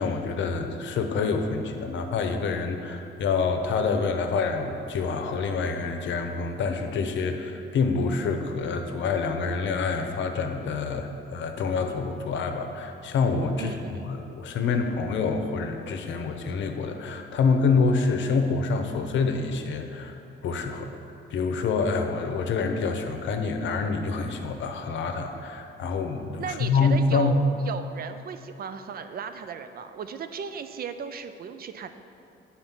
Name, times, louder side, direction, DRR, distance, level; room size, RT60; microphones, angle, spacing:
voice 1, 0.0-13.7 14.0-20.2 20.4-20.9 21.3-27.3, left 4 dB, 70° left, 6 dB, 0.7 m, -27 dB
voice 2, 13.6-14.1 26.4-31.9, right 6 dB, 50° right, 9 dB, 0.5 m, -36 dB
8.0 x 4.2 x 5.7 m, 2.6 s
cardioid pair, 90°, 20 cm